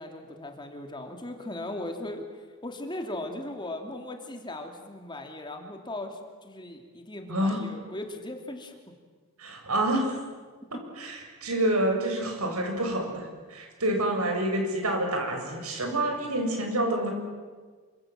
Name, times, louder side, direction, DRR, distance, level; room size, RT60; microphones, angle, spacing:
voice 1, 0.0-8.7 10.7-10.8, left 1 dB, 20° left, 4 dB, 2.9 m, -38 dB
voice 2, 9.4-10.2 11.0-17.1, right 1 dB, 85° right, 3 dB, 7.3 m, -28 dB
28.0 x 26.0 x 7.7 m, 1.5 s
head